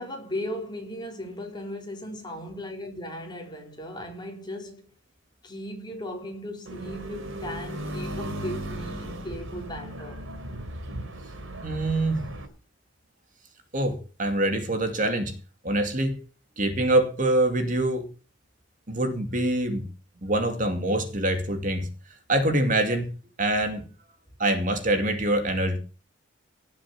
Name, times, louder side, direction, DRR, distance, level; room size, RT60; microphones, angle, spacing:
voice 1, 0.0-4.9 5.4-10.2, left 1 dB, 20° left, 4.0 m, -37 dB
sound 1, 6.7-12.5, right 1 dB, 80° right, 3.4 m, -36 dB
voice 2, 11.6-12.3 13.7-15.3 15.6-16.2 16.6-18.1 18.9-19.9 20.2-21.9 22.3-23.1 23.4-23.8 24.4-25.8, right 1 dB, 40° right, 2.5 m, -24 dB
18.5 x 7.5 x 7.3 m
head